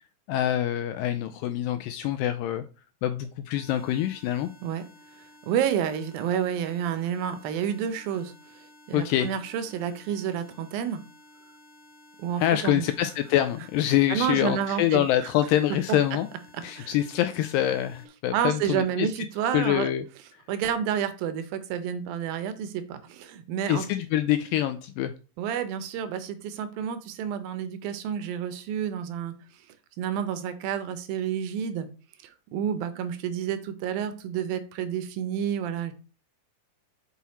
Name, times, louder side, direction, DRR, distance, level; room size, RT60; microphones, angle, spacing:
voice 1, 0.3-2.6 3.0-4.5 8.9-9.3 12.4-16.3 16.6-19.1 19.5-20.0 23.7-25.1, left 12 dB, 85° left, 9 dB, 2.0 m, -25 dB
sound 1, 3.5-18.1, left 1 dB, 60° left, 1.4 m, -54 dB
voice 2, 5.5-8.6 8.9-11.0 12.2-12.9 14.1-15.0 16.8-16.9 18.3-19.9 20.5-23.8 25.4-29.3 30.0-31.9 32.2-35.9, right 9 dB, 80° right, 10 dB, 2.4 m, -29 dB
6.0 x 5.6 x 4.1 m, 0.34 s
omnidirectional pair, 4.3 m